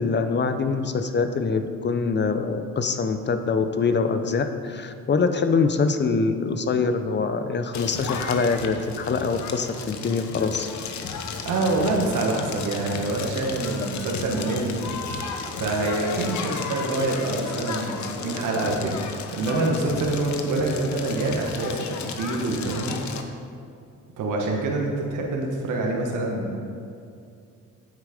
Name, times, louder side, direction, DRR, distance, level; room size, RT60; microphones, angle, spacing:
voice 1, 0.0-10.7, left 4 dB, 35° left, 8 dB, 0.8 m, -24 dB
Crackle, 7.7-23.2, left 5 dB, 70° left, 0.9 m, -33 dB
voice 2, 11.4-14.8 15.6-23.0 24.2-26.6, right 2 dB, 80° right, 0 dB, 1.4 m, -26 dB
8.4 x 8.1 x 5.1 m, 2.4 s
cardioid pair, 90°, 30 cm